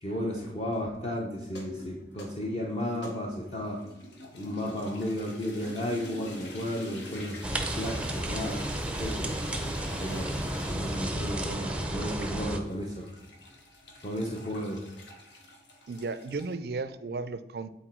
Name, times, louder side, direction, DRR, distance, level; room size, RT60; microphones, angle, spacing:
voice 1, 0.0-3.8 4.3-8.6 9.0-9.4 10.0-13.1 14.0-14.9, equal, 35° left, -1 dB, 0.7 m, -34 dB
sound 1, 1.4-16.5, left 1 dB, 80° left, 1.2 m, -47 dB
sound 2, 7.4-12.6, right 1 dB, 5° right, 0.5 m, -32 dB
voice 2, 15.9-17.7, right 3 dB, 60° right, 13 dB, 0.4 m, -34 dB
8.0 x 4.2 x 4.5 m, 1.0 s
head